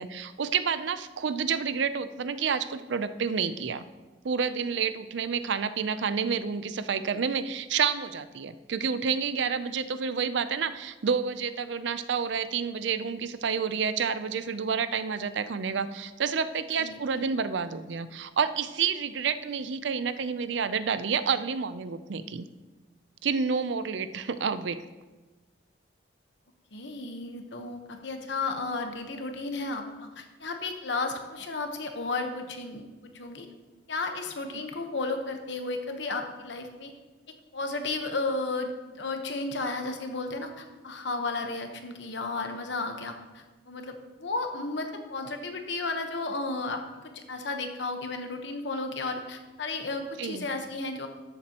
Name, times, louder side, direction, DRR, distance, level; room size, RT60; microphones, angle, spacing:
voice 1, 0.0-3.8 4.2-22.5 23.2-24.8 50.2-50.4, right 6 dB, 70° right, 13 dB, 0.5 m, -29 dB
voice 2, 16.8-17.3 26.7-33.5 33.9-36.9 37.5-51.1, left 3 dB, 70° left, 5 dB, 1.1 m, -33 dB
13.5 x 7.4 x 2.9 m, 1.2 s
head